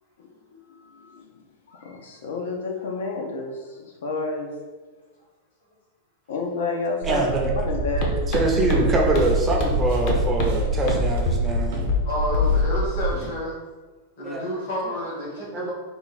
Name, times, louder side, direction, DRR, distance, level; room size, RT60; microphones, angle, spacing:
voice 1, 1.8-4.5 6.3-7.3 7.6-8.1, left 3 dB, 85° left, 1 dB, 0.8 m, -29 dB
voice 2, 7.0-7.5 8.2-11.8 14.2-14.5 15.5-15.7, right 2 dB, 15° right, 0 dB, 0.5 m, -24 dB
sound 1, 7.0-13.2, right 2 dB, 80° right, 0.4 m, -26 dB
sound 2, 8.0-8.1 8.3-8.4 8.7-8.8 9.1-9.2 9.6-9.7 10.1-10.5 10.9-11.0 11.3-11.6 11.9-12.0 12.3-12.8, left 5 dB, 35° left, 0.6 m, -24 dB
sound 3, 8.9-12.0 12.3-13.4, right 1 dB, 50° right, 0.9 m, -36 dB
voice 3, 12.0-13.6 14.2-15.7, left 1 dB, 60° left, -4 dB, 1.3 m, -30 dB
3.6 x 2.3 x 4.1 m, 1.3 s
supercardioid pair, 175°, 0 cm